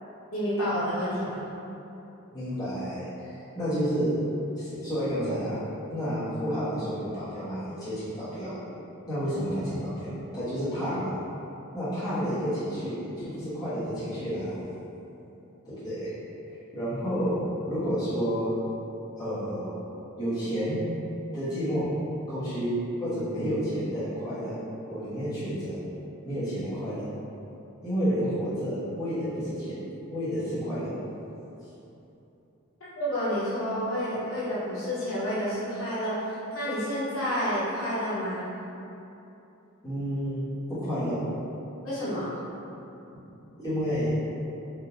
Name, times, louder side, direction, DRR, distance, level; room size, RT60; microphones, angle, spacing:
voice 1, 0.3-1.4 32.9-38.4 41.8-42.3, equal, 75° left, -10 dB, 1.0 m, -29 dB
voice 2, 2.3-4.1 4.6-5.6 5.9-8.6 9.1-11.1 11.7-14.6 15.6-16.1 16.5-17.4 17.7-18.5 19.2-19.7 20.2-20.8 21.3-21.9 22.3-24.6 24.9-25.8 26.2-27.0 27.8-29.8 30.1-30.9 39.8-40.4 40.7-41.2 43.6-44.1, equal, 20° left, -15 dB, 1.2 m, -30 dB
3.5 x 2.6 x 2.8 m, 2.9 s
head